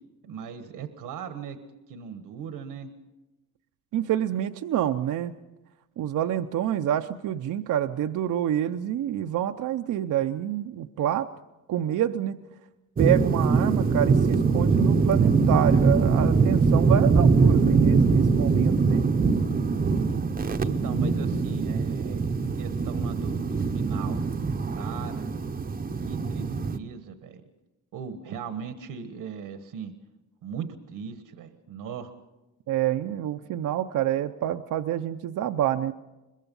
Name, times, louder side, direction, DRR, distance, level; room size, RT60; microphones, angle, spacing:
voice 1, 0.2-1.6 1.9-2.9 19.5-20.2 20.6-24.2 24.7-25.3 26.1-27.4 27.9-29.9 30.4-32.1, right 7 dB, 85° right, 9 dB, 1.4 m, -38 dB
voice 2, 3.9-5.4 6.0-11.3 11.7-12.4 13.0-19.1 32.7-35.9, right 11 dB, 65° right, 7 dB, 0.7 m, -27 dB
sound 1, 13.0-26.8, right 4 dB, 25° right, 0.8 m, -22 dB
23.0 x 21.5 x 5.5 m, 1.0 s
cardioid pair, 120°, 33 cm